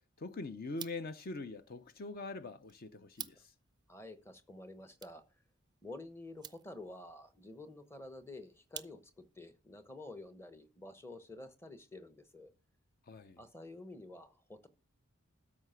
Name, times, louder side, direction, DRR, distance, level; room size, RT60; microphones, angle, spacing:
voice 1, 0.2-3.5 13.1-13.4, left 3 dB, 45° left, 0.6 m, -43 dB
sound 1, 0.6-9.4, right 8 dB, 20° right, 0.4 m, -54 dB
voice 2, 3.9-5.4 5.8-12.5 13.4-14.7, left 2 dB, 10° left, 0.9 m, -50 dB
13.0 x 4.9 x 5.6 m
head